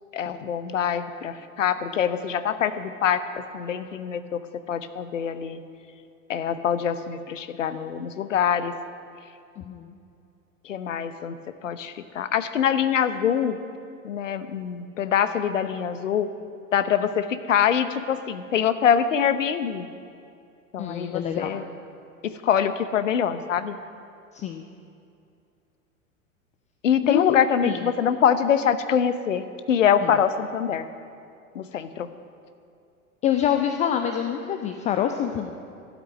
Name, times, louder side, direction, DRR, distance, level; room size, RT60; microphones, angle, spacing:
voice 1, 0.1-3.2 3.5-4.4 4.7-5.6 6.3-8.7 10.6-11.4 11.6-13.6 14.0-16.3 16.7-19.9 20.7-21.6 22.2-23.8 26.8-30.8 31.5-32.1, left 8 dB, 65° left, 11 dB, 1.0 m, -24 dB
voice 2, 9.6-9.9 20.8-21.5 24.3-24.7 27.0-27.9 30.0-30.2 33.2-35.5, left 9 dB, 15° left, 6 dB, 0.5 m, -26 dB
12.5 x 8.3 x 9.4 m, 2.5 s
figure-of-eight pair, 90°, 41 cm